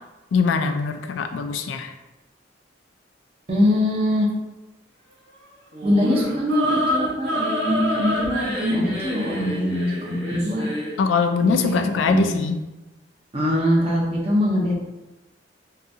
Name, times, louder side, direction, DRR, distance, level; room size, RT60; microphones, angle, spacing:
voice 1, 0.3-1.9 11.0-12.6, left 5 dB, 80° left, 7 dB, 0.3 m, -22 dB
voice 2, 3.5-4.3 5.8-10.7 11.4-12.3 13.3-14.8, left 1 dB, 30° right, -4 dB, 0.7 m, -22 dB
sound 1, 5.7-11.0, equal, 75° right, 0.9 m, -27 dB
3.8 x 2.3 x 2.6 m, 1.0 s
head